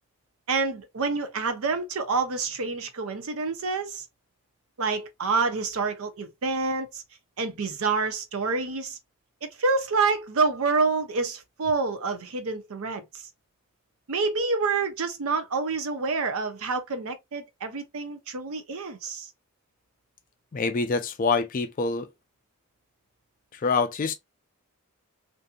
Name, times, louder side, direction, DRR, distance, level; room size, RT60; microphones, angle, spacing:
voice 1, 0.5-4.0 4.8-7.0 7.4-9.0 9.4-13.0 14.1-19.3, right 4 dB, 70° right, 0.6 m, -27 dB
voice 2, 20.5-22.1 23.5-24.1, left 4 dB, 35° left, 0.4 m, -26 dB
2.6 x 2.6 x 2.2 m
head